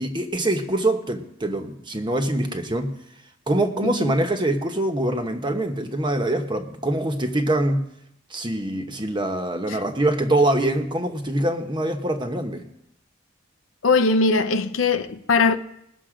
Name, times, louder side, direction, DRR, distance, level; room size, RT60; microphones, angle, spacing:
voice 1, 0.0-3.0 3.5-7.8 8.3-12.7, right 1 dB, 25° right, 1.0 m, -24 dB
voice 2, 13.8-15.6, left 4 dB, 80° left, 0.7 m, -20 dB
20.0 x 6.9 x 5.0 m
head